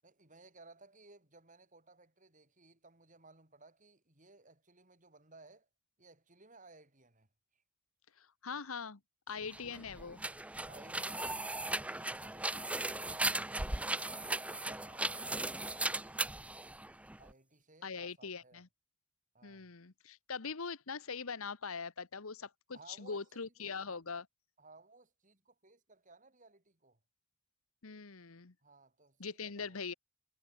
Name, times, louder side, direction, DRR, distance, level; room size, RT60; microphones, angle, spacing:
voice 1, 0.0-5.7 6.0-7.3 7.5-7.6 10.6-14.2 14.5-16.8 17.2-18.6 19.3-19.7 22.7-24.0 24.6-27.0 28.6-29.8, right 3 dB, 35° right, 6.8 m, -60 dB
voice 2, 8.2-9.0 9.3-10.2 17.8-18.7 19.4-24.2 27.8-28.5 29.2-29.9, left 5 dB, 80° left, 1.2 m, -42 dB
sound 1, 9.4-17.3, right 2 dB, 5° right, 0.7 m, -37 dB
head